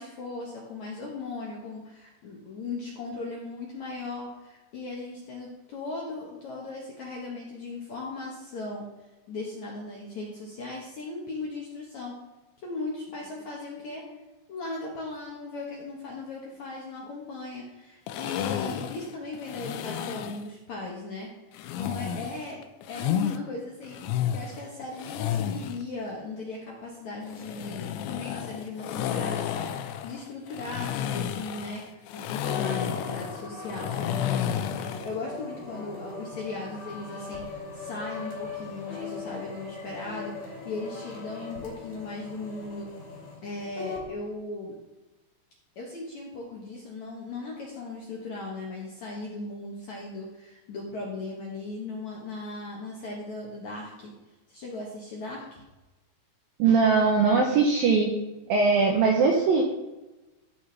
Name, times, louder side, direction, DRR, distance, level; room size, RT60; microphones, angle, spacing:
voice 1, 0.0-8.9 9.3-12.2 12.6-14.0 14.5-21.3 21.8-22.6 22.9-34.6 35.0-42.9 43.4-44.7 45.8-54.1 54.5-55.6, left 3 dB, 60° left, -3 dB, 2.0 m, -38 dB
sound 1, 18.1-20.5 21.5-23.4 23.8-25.8 27.2-35.2, left 9 dB, 80° left, 2.9 m, -32 dB
sound 2, 32.4-44.1, left 4 dB, 20° left, 2.4 m, -39 dB
voice 2, 56.6-58.1 58.5-59.6, right 4 dB, 75° right, 1 dB, 2.2 m, -21 dB
14.5 x 6.2 x 4.1 m, 1.1 s
omnidirectional pair, 5.4 m